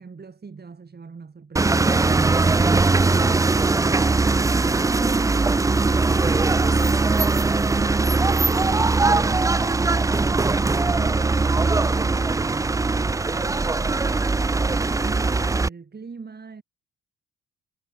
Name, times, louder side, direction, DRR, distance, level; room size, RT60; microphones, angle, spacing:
voice 1, 0.0-3.7 10.6-14.3 14.7-16.6, right 5 dB, 30° right, 4.8 m, -41 dB
sound 1, 1.6-15.7, right 3 dB, 10° right, 0.4 m, -20 dB
cardioid pair, 90°, 30 cm